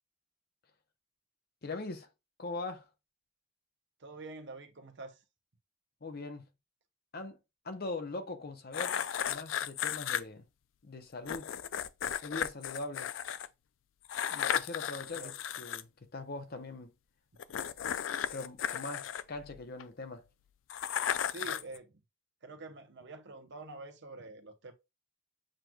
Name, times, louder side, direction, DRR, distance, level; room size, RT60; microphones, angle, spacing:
voice 1, 1.6-2.1 2.4-2.9 6.0-6.5 7.1-7.4 7.6-10.5 10.8-11.5 12.2-13.1 14.3-16.9 17.6-17.7 18.3-20.3, left 3 dB, 50° left, 0.8 m, -41 dB
voice 2, 4.0-5.2 15.1-15.3 21.3-22.0 22.4-24.7, right 3 dB, 60° right, 0.8 m, -46 dB
sound 1, 8.7-10.2 11.3-13.5 14.1-15.8 17.4-19.8 20.7-21.8, left 9 dB, 75° left, 0.4 m, -35 dB
7.4 x 3.1 x 2.2 m
head